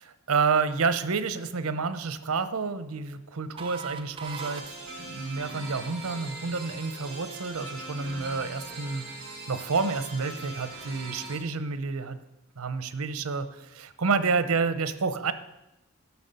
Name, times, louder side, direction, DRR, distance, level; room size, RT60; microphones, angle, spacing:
voice 1, 0.3-9.1 9.5-12.2 12.6-15.3, right 4 dB, 90° right, 12 dB, 0.7 m, -29 dB
sound 1, 3.6-8.4, right 5 dB, 25° right, 0.4 m, -45 dB
sound 2, 4.2-11.4, right 2 dB, 50° right, 3.0 m, -41 dB
11.5 x 5.9 x 6.8 m, 0.96 s
head